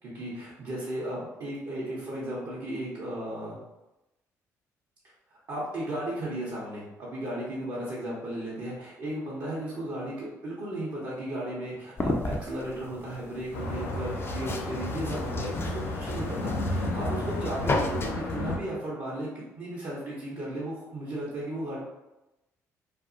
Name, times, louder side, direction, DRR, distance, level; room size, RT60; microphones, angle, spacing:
voice 1, 0.0-3.6 5.5-19.3 19.6-21.8, right 1 dB, 60° right, -7 dB, 0.8 m, -35 dB
sound 1, 12.0-18.1, left 2 dB, 30° left, 0.4 m, -34 dB
sound 2, 13.5-18.6, left 1 dB, 85° left, 0.5 m, -32 dB
2.6 x 2.3 x 2.5 m, 0.97 s
hypercardioid pair, 50°, 8 cm